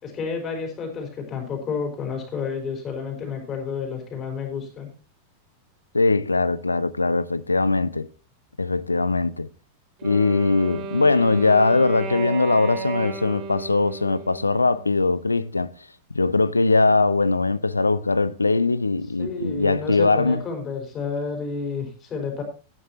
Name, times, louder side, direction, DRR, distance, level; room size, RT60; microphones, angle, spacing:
voice 1, 0.0-4.9 19.2-22.4, left 5 dB, 30° left, 5.0 m, -30 dB
voice 2, 5.9-8.1 8.6-9.5 10.0-15.7 16.1-20.4, left 3 dB, 80° left, 0.5 m, -21 dB
Wind instrument woodwind instrument, 10.0-15.0, right 4 dB, 40° right, 2.8 m, -34 dB
16.5 x 9.8 x 2.9 m
figure-of-eight pair, 90°, 0 cm